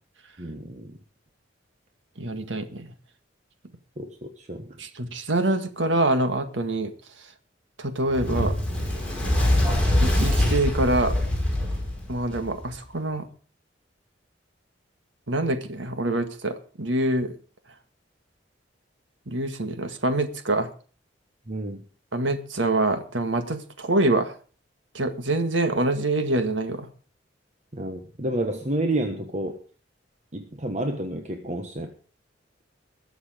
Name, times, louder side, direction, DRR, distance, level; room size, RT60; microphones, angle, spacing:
voice 1, 0.4-1.0 4.0-4.8 21.5-21.8 27.7-29.6 30.3-31.9, right 1 dB, 40° right, 5 dB, 1.3 m, -30 dB
voice 2, 2.2-2.9 4.8-6.9 7.8-8.5 10.0-11.1 12.1-13.2 15.3-17.4 19.3-20.7 22.1-24.3 24.9-26.9, right 2 dB, 80° right, 8 dB, 1.8 m, -25 dB
Fire, 8.1-12.7, left 1 dB, 5° left, 4.9 m, -23 dB
21.0 x 7.2 x 5.1 m, 0.40 s
head